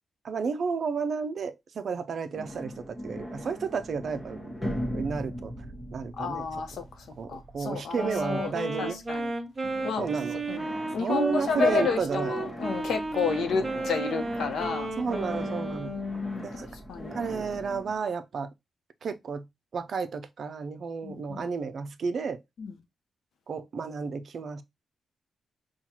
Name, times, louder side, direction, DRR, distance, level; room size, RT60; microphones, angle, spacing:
voice 1, 0.2-4.5 4.9-5.5 5.9-6.5 7.2-9.0 10.0-10.4 11.0-12.3 15.0-15.9 16.4-16.7 17.1-18.5 19.0-19.4 19.7-22.4 23.5-24.6, right 5 dB, 60° right, 0.5 m, -32 dB
sound 1, 2.3-9.3 9.6-18.0, equal, 20° left, 1.1 m, -40 dB
voice 2, 6.2-9.3 9.8-10.2 10.5-14.9 15.8-17.2 21.0-21.5 22.6-22.8, left 5 dB, 80° left, 0.9 m, -31 dB
Wind instrument woodwind instrument, 7.9-16.1, right 2 dB, 30° right, 1.0 m, -33 dB
5.7 x 2.4 x 2.9 m
cardioid pair, 115°, 0 cm